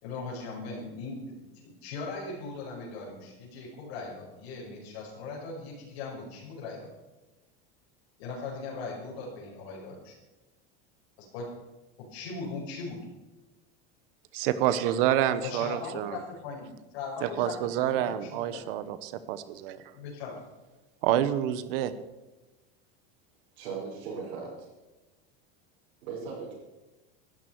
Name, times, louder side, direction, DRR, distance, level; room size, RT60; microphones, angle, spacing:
voice 1, 0.0-6.9 8.2-10.2 11.2-11.5 12.0-13.0 15.4-18.7 19.9-20.4, left 4 dB, 70° left, -5 dB, 5.5 m, -39 dB
voice 2, 14.3-16.2 17.2-19.8 21.0-21.9, right 11 dB, 60° right, 13 dB, 1.2 m, -28 dB
voice 3, 23.6-24.7 26.0-26.5, right 5 dB, 85° right, -7 dB, 6.1 m, -38 dB
19.5 x 13.0 x 4.7 m, 1.1 s
supercardioid pair, 175°, 31 cm